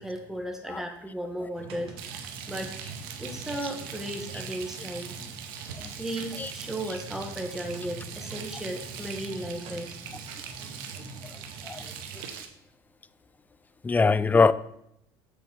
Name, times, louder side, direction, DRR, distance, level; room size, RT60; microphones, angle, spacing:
voice 1, 0.0-2.7 3.2-5.1 6.0-10.0, right 1 dB, 5° right, 3 dB, 1.3 m, -35 dB
sound 1, 1.6-12.3, right 3 dB, 60° right, 1.3 m, -44 dB
Frying (food), 2.0-12.5, right 8 dB, 90° right, 0.8 m, -42 dB
voice 2, 13.8-14.5, left 4 dB, 15° left, 17 dB, 0.3 m, -21 dB
6.5 x 4.3 x 5.3 m, 0.75 s
supercardioid pair, 95°, 11 cm